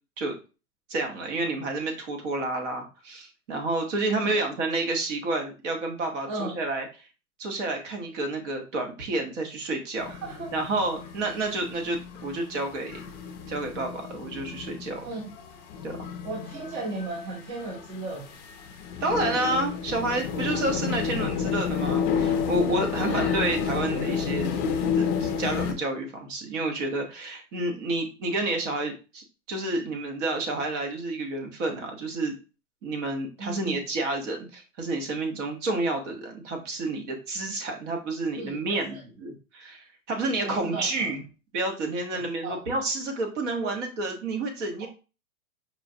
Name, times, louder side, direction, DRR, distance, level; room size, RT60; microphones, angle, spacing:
voice 1, 0.9-6.8 7.4-10.1 10.5-13.0 13.5-15.0 15.8-15.9 19.0-24.5 25.0-32.3 32.8-41.2 41.5-44.9, right 2 dB, 55° right, 3 dB, 1.3 m, -30 dB
voice 2, 6.3-6.6 10.1-10.5 15.0-15.3 16.2-18.3 23.0-23.4 33.4-33.8 38.4-39.0 40.4-41.1 42.1-42.7 43.6-43.8, right 2 dB, 30° right, 0 dB, 0.8 m, -36 dB
sound 1, 10.0-25.7, left 6 dB, 30° left, 0.5 m, -30 dB
4.8 x 2.4 x 2.7 m, 0.33 s
hypercardioid pair, 140°, 44 cm